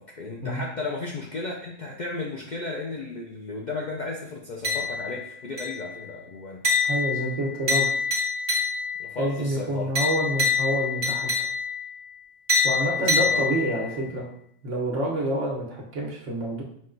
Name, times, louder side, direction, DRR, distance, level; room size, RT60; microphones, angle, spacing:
voice 1, 0.0-6.6 9.0-9.9 12.8-13.4 14.0-14.2, left 3 dB, 55° left, -1 dB, 0.5 m, -34 dB
sound 1, 4.6-5.2 5.6-6.0 6.6-9.1 10.0-11.9 12.5-13.9, left 4 dB, 40° right, 1.5 m, -25 dB
voice 2, 6.8-7.9 9.2-11.3 12.6-14.3 14.6-16.6, right 1 dB, 70° right, -2 dB, 1.4 m, -28 dB
5.2 x 2.3 x 3.8 m, 0.71 s
omnidirectional pair, 1.3 m